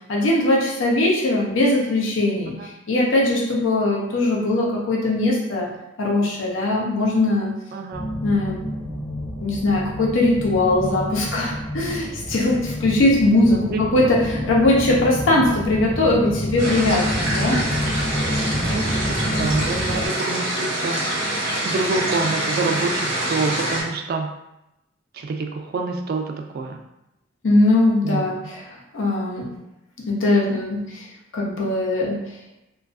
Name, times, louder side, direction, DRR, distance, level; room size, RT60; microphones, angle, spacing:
voice 1, 0.1-2.6 2.9-5.7 6.0-7.5 8.2-8.7 9.4-17.6 27.4-28.7 28.9-29.5 30.1-31.0 31.3-32.2, left 2 dB, 80° left, -2 dB, 0.6 m, -20 dB
voice 2, 7.7-8.1 13.5-13.9 18.5-19.0 19.3-21.0 21.6-24.3 25.1-26.8 28.0-28.3, right 3 dB, 50° right, 4 dB, 0.3 m, -27 dB
sound 1, 7.9-20.1, equal, 10° left, 0.4 m, -28 dB
sound 2, 16.6-23.8, right 1 dB, 85° right, 0.9 m, -25 dB
2.4 x 2.2 x 2.3 m, 0.89 s
head